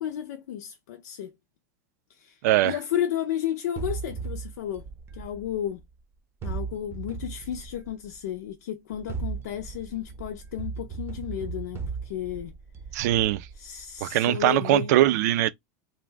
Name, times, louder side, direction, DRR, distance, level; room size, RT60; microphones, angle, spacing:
voice 1, 0.0-1.3 2.1-4.9 5.1-5.8 6.4-12.5 13.6-15.0, left 10 dB, 80° left, 0.6 m, -33 dB
voice 2, 2.4-2.7 12.9-13.5 14.0-15.5, right 14 dB, 70° right, 0.4 m, -21 dB
sound 1, 3.8-5.9 6.4-8.2 8.9-14.0, right 5 dB, 25° right, 0.6 m, -37 dB
2.6 x 2.2 x 3.3 m
supercardioid pair, 120°, 9 cm